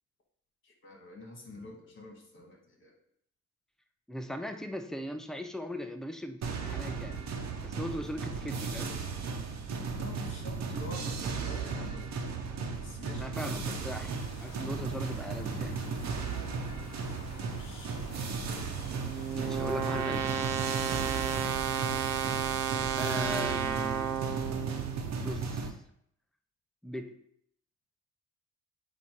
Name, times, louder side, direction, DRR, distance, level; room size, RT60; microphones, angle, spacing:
voice 1, 0.6-2.9 10.0-12.0 12.7-13.4 17.6-18.1 19.6-20.3, left 2 dB, 40° left, 1 dB, 2.1 m, -47 dB
voice 2, 4.1-7.2 7.6-9.0 13.2-15.8 19.3-20.2 23.0-24.2 25.2-25.7 26.8-27.2, equal, ahead, 6 dB, 0.6 m, -39 dB
sound 1, 6.4-25.7, right 4 dB, 60° right, 1.1 m, -36 dB
sound 2, 13.5-20.5, left 5 dB, 60° left, 1.0 m, -52 dB
sound 3, 18.2-25.3, right 8 dB, 85° right, 0.8 m, -33 dB
8.6 x 2.9 x 4.6 m, 0.69 s
cardioid pair, 90°, 30 cm